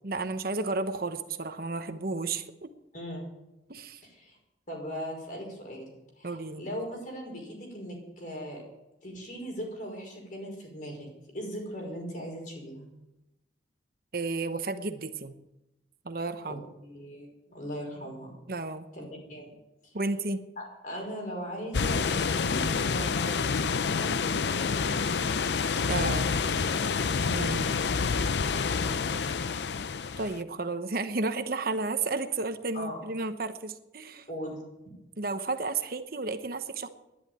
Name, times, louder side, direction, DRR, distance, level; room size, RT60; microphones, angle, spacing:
voice 1, 0.0-2.7 3.7-4.0 6.2-6.7 14.1-15.3 16.0-16.7 18.5-18.9 19.9-20.4 25.9-26.3 27.3-27.7 30.2-34.3 35.2-36.9, right 3 dB, 55° right, 8 dB, 1.0 m, -32 dB
voice 2, 4.0-4.4 4.7-8.6 9.0-11.1 11.3-12.9 16.5-16.6 16.8-18.4 18.9-19.5 19.8-19.9 20.6-23.4 23.9-25.2 26.2-26.6 28.5-29.5 32.7-33.0 34.3-34.6, equal, 50° left, 0 dB, 5.3 m, -39 dB
sound 1, 21.7-30.4, left 5 dB, 70° left, 0.5 m, -28 dB
11.5 x 10.5 x 9.0 m, 0.92 s
head